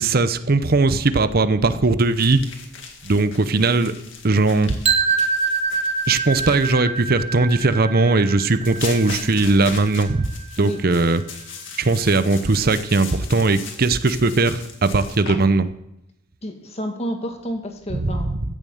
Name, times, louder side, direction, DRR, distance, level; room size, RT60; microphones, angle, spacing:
voice 1, 0.0-2.4 3.0-3.9 4.2-4.8 6.1-10.3 10.6-11.2 11.8-15.7 17.9-18.2, right 3 dB, 50° right, 12 dB, 0.8 m, -19 dB
sound 1, 2.0-6.7 8.7-15.4, left 5 dB, 70° left, 2.1 m, -38 dB
sound 2, 4.8-10.8, right 5 dB, 30° right, 1.0 m, -25 dB
voice 2, 16.4-18.4, equal, 30° left, 4 dB, 2.0 m, -30 dB
15.0 x 7.3 x 7.8 m, 0.83 s
head